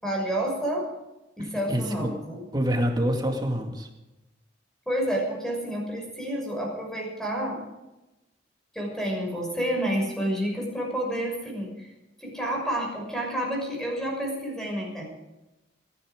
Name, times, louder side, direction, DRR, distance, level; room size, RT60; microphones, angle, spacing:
voice 1, 0.0-0.9 1.4-2.4 4.9-7.6 8.7-11.9 12.2-15.0, right 1 dB, 5° left, -1 dB, 6.2 m, -29 dB
voice 2, 1.4-2.1 2.5-3.9, equal, 20° right, 2 dB, 2.2 m, -27 dB
26.0 x 11.0 x 5.1 m, 0.99 s
head